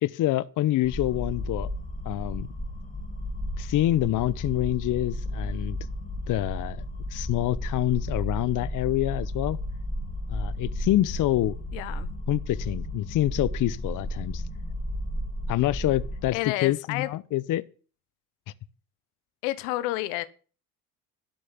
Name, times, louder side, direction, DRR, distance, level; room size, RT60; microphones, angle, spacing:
voice 1, 0.0-1.7 2.0-2.5 3.6-5.8 6.3-6.8 7.1-9.6 10.3-11.5 12.3-14.4 15.5-17.6, left 15 dB, 55° left, 0.8 m, -26 dB
sound 1, 0.8-16.3, left 1 dB, 20° left, 2.3 m, -33 dB
voice 2, 8.4-8.7 11.7-12.1 16.3-17.1 19.4-20.3, left 17 dB, 90° left, 1.0 m, -30 dB
12.5 x 6.4 x 9.6 m
supercardioid pair, 80°, 36 cm